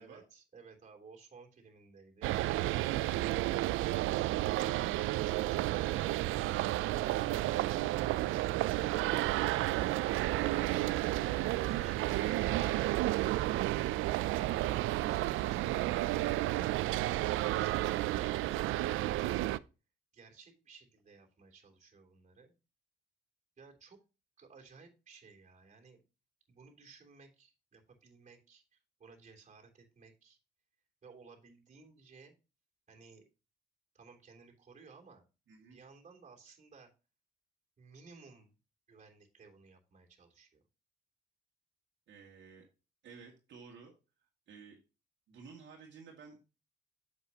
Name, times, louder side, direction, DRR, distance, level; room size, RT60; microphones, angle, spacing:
voice 1, 0.0-8.6 20.1-22.5 23.6-24.0 24.4-26.0 26.5-30.4 31.0-32.3 32.9-33.2 33.9-35.2 35.7-36.9 37.8-38.5 38.9-40.6, right 5 dB, 40° right, 1 dB, 3.2 m, -57 dB
sound 1, 2.2-19.6, right 16 dB, 85° right, 0.4 m, -31 dB
voice 2, 35.5-35.8 42.1-42.6 43.0-43.9 44.5-44.8 45.3-46.4, right 5 dB, 65° right, 0 dB, 2.2 m, -54 dB
8.2 x 7.5 x 2.8 m, 0.30 s
cardioid pair, 90°, 20 cm